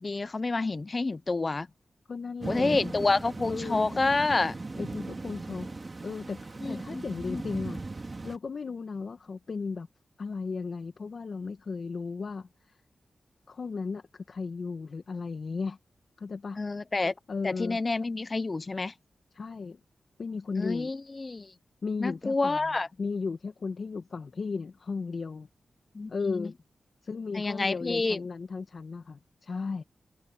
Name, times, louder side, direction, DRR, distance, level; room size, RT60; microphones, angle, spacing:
voice 1, 0.0-1.7 2.5-4.5 6.6-7.4 16.6-17.1 17.4-18.9 20.6-21.5 22.0-22.9 25.9-26.5 27.3-28.2, left 3 dB, 40° left, 0.7 m, -29 dB
voice 2, 2.1-2.9 3.5-4.0 4.7-5.7 6.0-7.8 8.2-9.9 10.2-12.8 13.5-15.8 16.2-16.6 17.3-17.8 19.3-19.8 20.2-20.9 21.8-22.7 23.0-25.5 26.1-26.5 27.0-29.8, left 4 dB, 65° left, 1.6 m, -35 dB
sound 1, 2.4-8.4, right 3 dB, 40° right, 2.9 m, -38 dB
cardioid pair, 55°, 0 cm